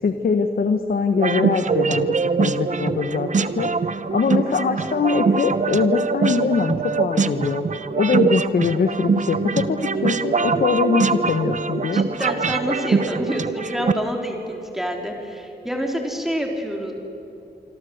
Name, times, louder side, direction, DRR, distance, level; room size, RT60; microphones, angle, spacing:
voice 1, 0.0-3.7 4.1-7.6 7.9-12.0, left 5 dB, 55° left, 7 dB, 1.4 m, -22 dB
sound 1, 1.2-13.9, right 4 dB, 45° right, 0.9 m, -23 dB
voice 2, 11.9-16.9, equal, ahead, 1 dB, 4.1 m, -27 dB
26.5 x 25.0 x 8.1 m, 2.9 s
wide cardioid pair, 140°, 18 cm